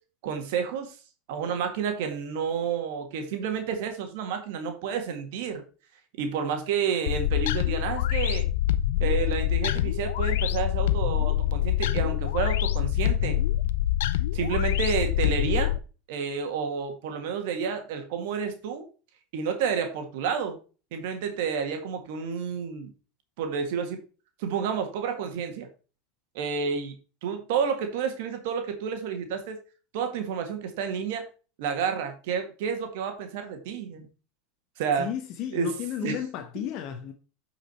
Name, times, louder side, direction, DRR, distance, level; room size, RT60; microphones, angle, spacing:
voice 1, 0.2-0.9 1.3-5.6 6.2-8.4 9.0-13.4 14.3-15.7 16.1-18.9 19.3-20.6 20.9-22.9 23.4-24.0 24.4-25.7 26.4-27.0 27.2-29.6 29.9-31.2 31.6-34.1 34.8-35.1 35.5-35.7 36.0-36.2, right 6 dB, 70° right, 1.8 m, -30 dB
sound 1, 7.1-15.8, left 13 dB, 85° left, 0.6 m, -25 dB
voice 2, 35.0-37.1, left 9 dB, 50° left, 1.0 m, -33 dB
8.5 x 5.0 x 4.3 m
supercardioid pair, 125°, 0 cm